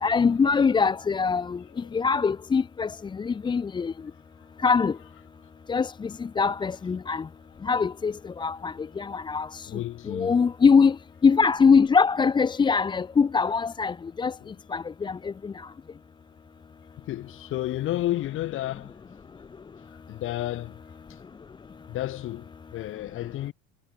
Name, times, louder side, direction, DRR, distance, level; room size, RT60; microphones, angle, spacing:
voice 1, 0.0-1.6 1.9-2.9 3.2-3.9 4.6-4.9 5.7-6.1 6.4-7.2 7.6-9.7 10.1-10.9 11.2-14.3 14.7-15.3, left 5 dB, 15° left, 1.5 m, -22 dB
voice 2, 1.6-2.0 7.0-7.2 9.7-10.4 14.4-14.6 17.0-18.9 19.9-20.8 21.1-21.2 21.9-23.5, left 14 dB, 35° left, 7.8 m, -32 dB
cardioid pair, 170°, 34 cm